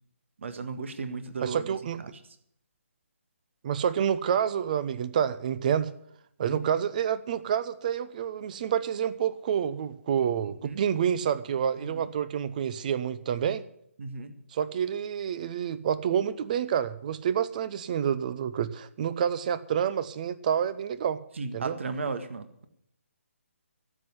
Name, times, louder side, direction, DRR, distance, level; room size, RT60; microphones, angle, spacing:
voice 1, 0.4-1.7 2.0-2.1 6.4-6.7 10.6-10.8 11.8-12.1 14.0-14.3 21.4-22.7, right 4 dB, 60° right, 10 dB, 1.8 m, -35 dB
voice 2, 1.4-2.0 3.6-5.9 6.4-13.6 14.5-21.2 21.5-21.8, right 8 dB, 35° right, 15 dB, 0.8 m, -28 dB
12.0 x 7.8 x 9.7 m, 0.71 s
hypercardioid pair, 155°, 8 cm